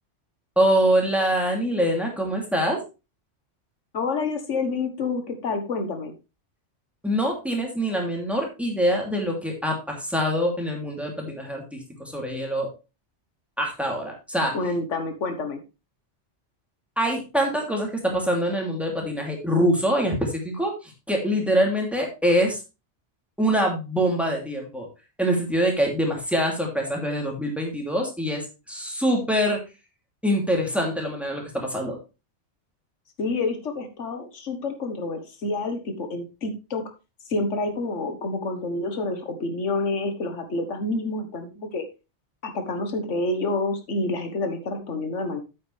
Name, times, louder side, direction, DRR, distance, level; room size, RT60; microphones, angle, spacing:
voice 1, 0.6-2.8 7.0-12.7 13.6-14.6 17.0-22.6 23.4-24.9 25.2-29.6 30.2-32.0, equal, ahead, 0 dB, 2.7 m, -24 dB
voice 2, 3.9-6.1 14.5-15.6 33.2-36.8 37.3-41.8 42.4-45.4, left 3 dB, 85° left, 7 dB, 1.6 m, -28 dB
8.5 x 8.5 x 3.3 m, 0.28 s
omnidirectional pair, 1.2 m